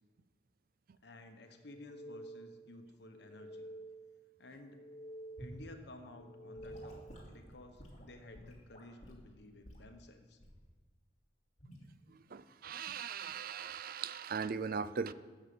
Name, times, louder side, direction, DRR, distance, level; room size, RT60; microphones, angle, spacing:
voice 1, 1.0-3.7 4.4-4.8 5.4-10.4, left 2 dB, 60° left, 1.2 m, -54 dB
sound 1, 1.6-2.7 3.1-4.2 4.6-5.7 6.1-7.3, right 1 dB, 20° left, 0.8 m, -50 dB
Gurgling / Sink (filling or washing) / Liquid, 5.4-5.6 6.6-9.3 9.6-9.9 10.4-10.7 11.6-11.8, equal, 40° left, 2.6 m, -52 dB
voice 2, 12.1-15.1, right 6 dB, 50° right, 0.4 m, -39 dB
12.0 x 7.4 x 6.9 m
head